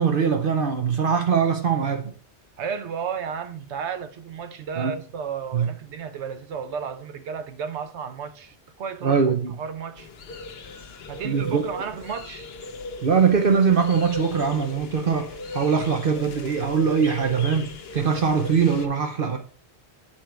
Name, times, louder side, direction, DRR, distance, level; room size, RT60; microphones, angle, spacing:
voice 1, 0.0-2.1 4.8-4.9 5.5-5.7 9.0-9.5 11.2-11.6 13.0-19.4, right 6 dB, 55° right, 0.9 m, -22 dB
voice 2, 2.6-9.2 9.6-10.1 11.1-12.5, right 7 dB, 85° right, 1.0 m, -33 dB
sound 1, 10.0-18.9, left 2 dB, 65° left, 1.0 m, -37 dB
7.4 x 4.4 x 4.5 m
omnidirectional pair, 1.1 m